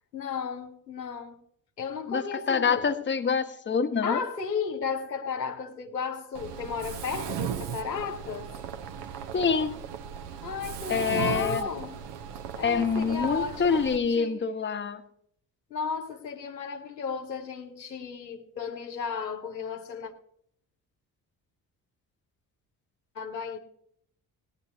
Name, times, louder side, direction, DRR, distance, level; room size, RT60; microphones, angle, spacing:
voice 1, 0.1-1.4 1.8-3.0 4.0-8.5 10.4-12.0 12.6-14.4 15.7-20.1 23.1-23.6, left 6 dB, 85° left, 0.9 m, -34 dB
voice 2, 2.5-4.2 9.3-9.8 10.9-11.7 12.6-15.0, left 5 dB, 25° left, 1.1 m, -26 dB
Mechanisms, 6.4-14.0, right 9 dB, 55° right, 1.0 m, -37 dB
18.0 x 10.0 x 2.8 m
figure-of-eight pair, 45°, 48 cm